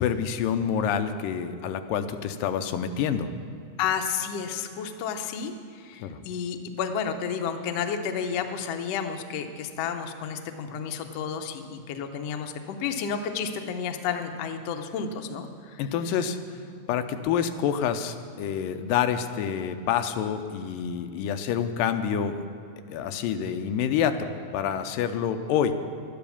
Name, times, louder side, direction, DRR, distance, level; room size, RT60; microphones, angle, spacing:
voice 1, 0.0-3.3 6.0-6.2 15.8-16.4 16.9-22.4 22.9-25.7, left 8 dB, 90° left, 8 dB, 2.4 m, -27 dB
voice 2, 3.8-15.8, left 7 dB, 75° left, 5 dB, 1.5 m, -31 dB
12.0 x 10.5 x 7.1 m, 2.5 s
omnidirectional pair, 3.9 m